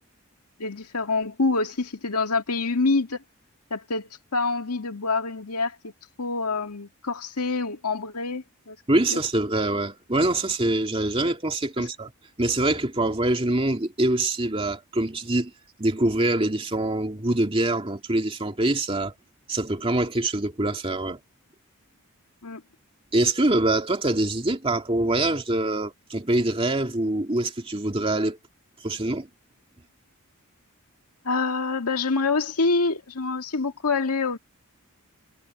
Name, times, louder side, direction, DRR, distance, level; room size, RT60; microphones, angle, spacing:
voice 1, 0.6-3.2 3.7-5.9 6.2-8.8 9.1-9.2 11.8-11.9 22.4-22.6 31.2-34.4, left 3 dB, 90° left, 1.9 m, -26 dB
voice 2, 8.9-12.1 12.4-15.5 15.8-19.1 19.5-21.2 23.1-28.4 28.8-29.3, right 2 dB, 25° right, 2.5 m, -24 dB
head